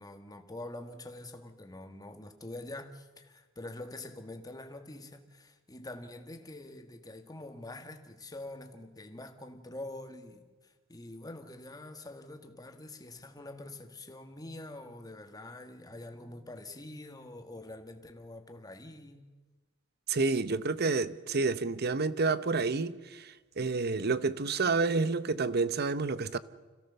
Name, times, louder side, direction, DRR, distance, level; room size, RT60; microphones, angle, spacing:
voice 1, 0.0-19.3, left 2 dB, 20° left, 1.8 m, -45 dB
voice 2, 20.1-26.4, right 4 dB, 50° right, 0.9 m, -29 dB
26.5 x 16.5 x 7.0 m
head